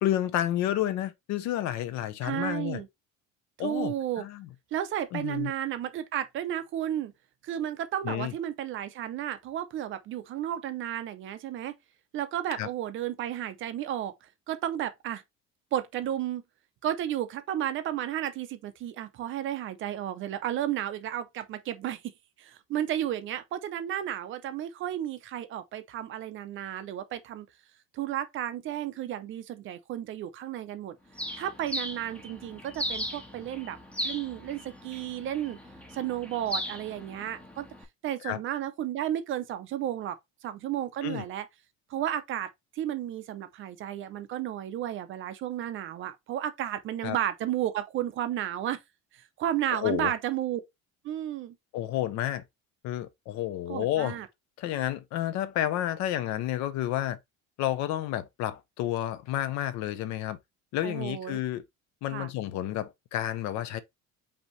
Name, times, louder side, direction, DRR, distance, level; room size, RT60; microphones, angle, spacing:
voice 1, 0.0-2.8 3.6-4.5 5.1-5.5 8.0-8.3 12.5-12.7 38.2-38.4 41.0-41.2 47.0-47.2 49.7-50.1 51.7-52.4 52.8-54.2 54.6-57.2 57.6-60.4 60.7-61.6 62.0-63.8, left 12 dB, 55° left, 0.6 m, -30 dB
voice 2, 2.2-2.9 3.6-4.2 4.7-7.1 7.4-11.7 12.1-15.2 15.7-16.4 16.8-22.1 22.4-27.5 27.9-31.0 31.4-33.8 34.0-35.6 35.9-37.7 38.0-40.2 40.4-41.5 41.9-42.5 42.7-48.8 49.1-50.6 51.0-51.5 53.7-54.3 60.8-61.4 62.1-62.3, right 11 dB, 40° right, 0.5 m, -33 dB
Bird, 31.2-37.8, equal, 5° left, 0.6 m, -38 dB
5.3 x 2.8 x 3.1 m
cardioid pair, 175°, 32 cm